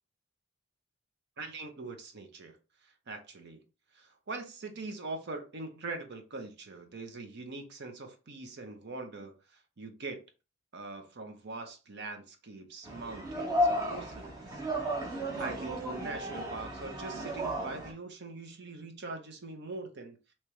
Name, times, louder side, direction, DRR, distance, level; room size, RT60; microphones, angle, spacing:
voice 1, 1.4-3.6 3.9-10.2 10.7-14.6 15.1-20.2, right 3 dB, 55° right, 0.7 m, -42 dB
sound 1, 12.8-17.9, equal, 20° right, 0.9 m, -33 dB
3.3 x 2.9 x 3.0 m
head